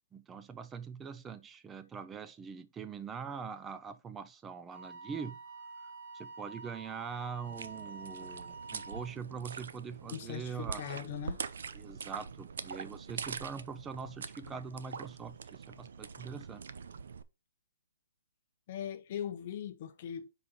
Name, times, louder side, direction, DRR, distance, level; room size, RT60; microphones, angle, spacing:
voice 1, 0.1-5.4 6.1-10.8 11.7-16.6, right 6 dB, 10° right, 0.4 m, -43 dB
Wind instrument woodwind instrument, 4.7-9.2, right 3 dB, 40° right, 1.5 m, -48 dB
sound 1, 7.4-17.2, right 5 dB, 70° right, 0.6 m, -44 dB
voice 2, 10.1-11.4 18.7-20.3, left 9 dB, 40° left, 0.7 m, -40 dB
5.1 x 3.9 x 5.6 m
hypercardioid pair, 160°, 0 cm